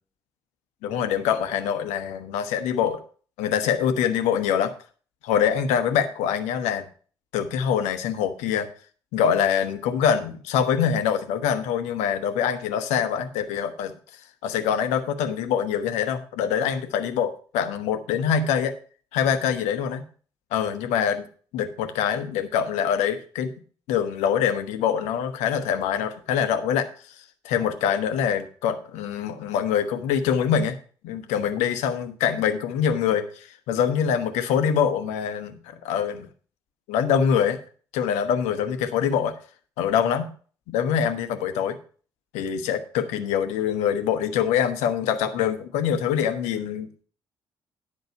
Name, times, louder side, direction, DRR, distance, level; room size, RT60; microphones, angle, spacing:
voice 1, 0.8-3.0 3.4-4.7 5.2-6.8 7.3-8.7 9.1-13.9 14.4-18.7 19.1-20.0 20.5-21.2 21.5-23.5 23.9-30.8 31.0-36.3 36.9-37.6 37.9-39.3 39.8-40.3 40.7-41.8 42.3-47.0, left 8 dB, 70° left, 9 dB, 1.2 m, -24 dB
10.5 x 5.9 x 5.8 m, 0.42 s
figure-of-eight pair, 45°, 12 cm